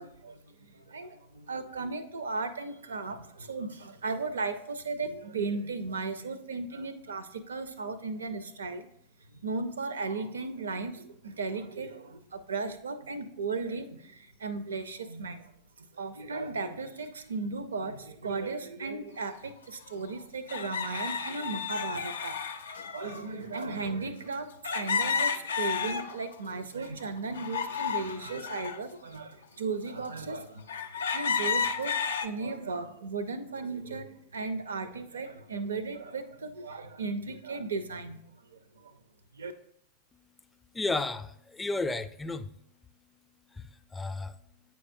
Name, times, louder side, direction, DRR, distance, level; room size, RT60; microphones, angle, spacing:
voice 1, 0.0-8.9 9.4-15.5 15.8-22.4 22.9-30.7 31.1-38.2 38.5-39.0 39.3-39.5, right 4 dB, 80° right, 12 dB, 0.5 m, -36 dB
sound 1, 19.3-19.4 20.5-23.2 24.6-26.4 26.8-28.8 29.4-29.5 30.2-30.3 30.7-32.3, left 6 dB, 80° left, 0.4 m, -32 dB
voice 2, 40.7-42.5 43.5-44.4, left 3 dB, 15° left, 10 dB, 0.4 m, -33 dB
8.4 x 4.7 x 2.6 m, 0.73 s
hypercardioid pair, 95°, 0 cm